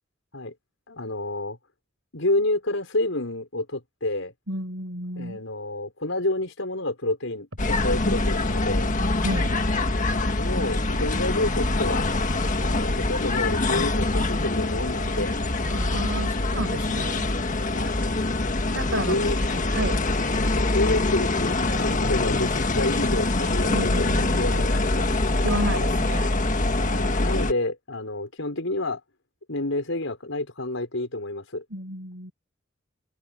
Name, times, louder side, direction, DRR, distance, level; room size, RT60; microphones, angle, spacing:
voice 1, 0.9-1.6 2.1-4.3 5.2-8.9 10.1-12.0 12.6-15.3 17.7-18.0 18.9-19.4 20.4-24.1 24.4-25.1 26.9-29.0 29.5-31.6, left 2 dB, 80° left, 5.5 m, -29 dB
voice 2, 4.5-5.4 9.2-9.6 15.7-17.3 18.7-19.2 19.7-20.0 23.7-24.6 25.4-26.3 31.7-32.3, right 1 dB, 75° right, 5.6 m, -31 dB
sound 1, 7.6-27.5, left 2 dB, 40° left, 1.5 m, -24 dB
open air
head